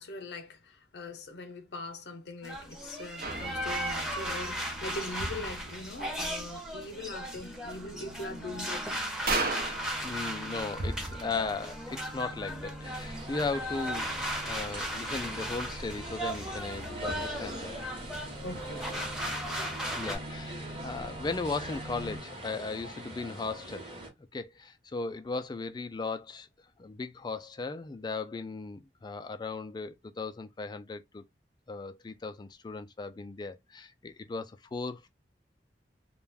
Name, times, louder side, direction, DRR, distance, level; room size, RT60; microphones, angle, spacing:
voice 1, 0.0-8.9 18.4-19.1 20.5-20.6, left 2 dB, 70° left, 0.6 m, -42 dB
sound 1, 2.4-20.2, equal, 5° right, 0.7 m, -37 dB
sound 2, 3.2-22.2, right 2 dB, 55° right, 0.6 m, -40 dB
voice 2, 10.0-14.1 14.4-17.8 19.9-23.9 24.3-26.5 26.8-31.2 31.7-35.1, left 4 dB, 25° left, 0.3 m, -37 dB
sound 3, 12.8-24.1, right 1 dB, 30° right, 0.9 m, -44 dB
2.4 x 2.2 x 3.2 m
head